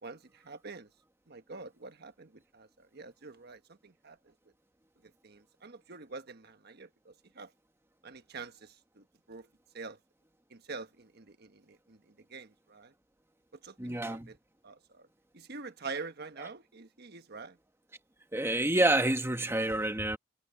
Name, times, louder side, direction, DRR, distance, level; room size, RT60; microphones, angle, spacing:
voice 1, 0.0-0.9 1.3-4.3 5.2-7.5 8.0-9.5 9.7-10.0 10.5-12.9 13.6-14.4 14.6-15.1 15.3-17.6, right 4 dB, 60° right, 1.4 m, -46 dB
voice 2, 13.8-14.3 18.3-20.2, right 1 dB, 15° right, 1.6 m, -28 dB
head